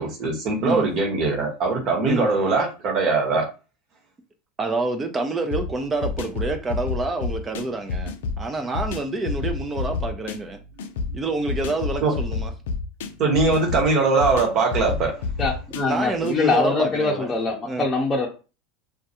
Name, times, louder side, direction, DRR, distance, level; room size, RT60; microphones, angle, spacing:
voice 1, 0.0-3.5 12.0-12.1 13.2-15.1, right 3 dB, 50° right, 1.0 m, -21 dB
voice 2, 4.6-10.6 11.1-12.5 15.9-17.3 17.6-17.8, right 3 dB, 25° right, 0.4 m, -27 dB
sound 1, 5.5-16.4, left 4 dB, 75° left, 0.3 m, -30 dB
voice 3, 15.4-18.3, left 3 dB, 20° left, 0.6 m, -23 dB
2.2 x 2.2 x 2.8 m
hypercardioid pair, 90°, 0 cm